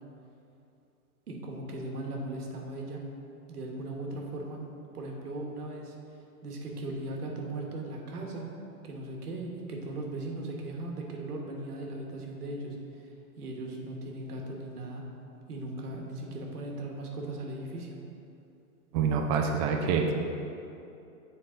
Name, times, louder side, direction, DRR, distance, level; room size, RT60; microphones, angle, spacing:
voice 1, 1.3-3.0 3.5-4.6 4.9-5.9 6.4-8.5 8.8-12.8 13.4-15.1 15.5-18.0, right 2 dB, 90° right, 0 dB, 1.3 m, -38 dB
voice 2, 18.9-20.1, right 6 dB, 25° right, 2 dB, 0.3 m, -26 dB
7.3 x 4.2 x 3.7 m, 2.7 s
hypercardioid pair, 120°, 44 cm